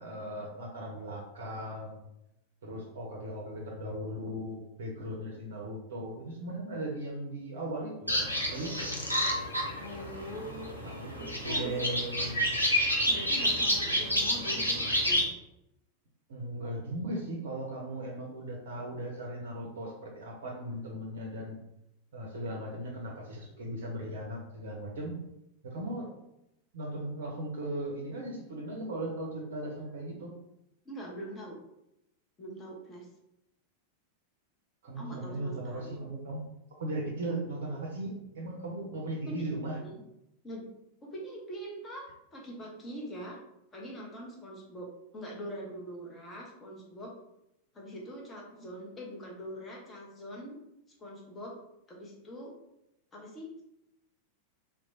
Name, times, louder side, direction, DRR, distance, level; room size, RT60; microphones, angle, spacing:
voice 1, 0.0-2.0 2.6-8.9 10.8-12.6 16.3-21.6 22.1-25.1 25.6-26.1 26.7-30.3 34.8-36.4 36.8-39.8, right 1 dB, 60° right, 0 dB, 0.5 m, -38 dB
sound 1, 8.1-15.2, equal, 90° left, 0.5 m, -29 dB
voice 2, 9.8-11.0 11.5-11.8 13.1-15.3 30.8-31.6 32.4-33.1 34.9-36.0 39.3-40.0 40.4-40.6 41.0-43.4 43.7-47.1 47.7-50.5 51.0-51.5 51.9-52.5 53.1-53.6, equal, 20° left, -2 dB, 0.8 m, -43 dB
3.0 x 2.1 x 2.6 m, 0.84 s
figure-of-eight pair, 90°, 0 cm